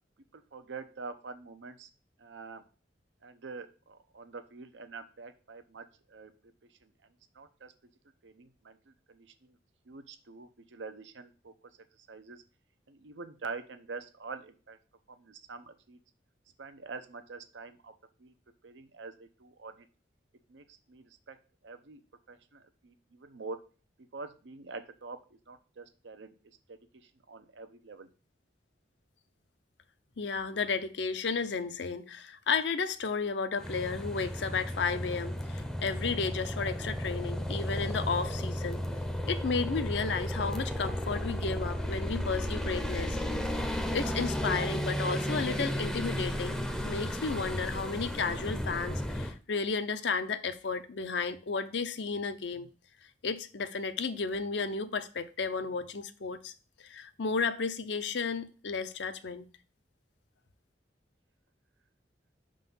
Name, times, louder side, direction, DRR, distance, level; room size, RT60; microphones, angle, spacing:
voice 1, 0.3-1.9 2.2-2.6 3.2-6.3 6.8-6.9 7.3-7.7 8.2-9.6 9.9-11.5 12.1-12.4 12.9-14.8 15.1-16.0 16.6-17.9 18.2-18.3 18.6-19.9 20.5-21.4 21.6-22.0 22.3-23.6 24.1-25.2 25.5-26.3 26.7-26.8 27.3-28.1, right 4 dB, 85° right, 0.7 m, -45 dB
voice 2, 30.2-38.9 39.3-43.2 43.6-52.7 53.2-56.5 56.8-59.5, left 5 dB, 70° left, 0.6 m, -33 dB
sound 1, 33.6-49.3, equal, 5° left, 0.6 m, -34 dB
5.7 x 3.9 x 5.4 m
head